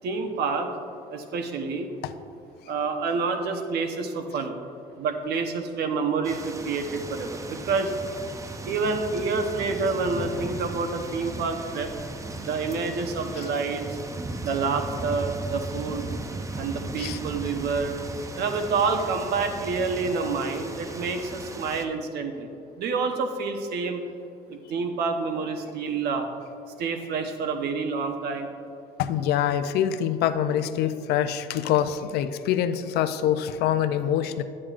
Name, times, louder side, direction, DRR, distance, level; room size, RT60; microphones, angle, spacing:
voice 1, 0.0-0.7 1.1-1.9 2.7-4.5 5.0-7.9 8.6-11.9 12.4-14.0 14.4-16.1 16.6-17.9 18.3-22.5 22.8-24.0 24.5-26.2 26.8-28.5, right 4 dB, 75° right, 5 dB, 0.9 m, -28 dB
sound 1, 6.2-21.9, right 2 dB, 20° right, 0.5 m, -36 dB
voice 2, 29.0-34.4, left 10 dB, 70° left, 10 dB, 0.4 m, -25 dB
10.5 x 8.5 x 2.5 m, 2.5 s
cardioid pair, 110°, 17 cm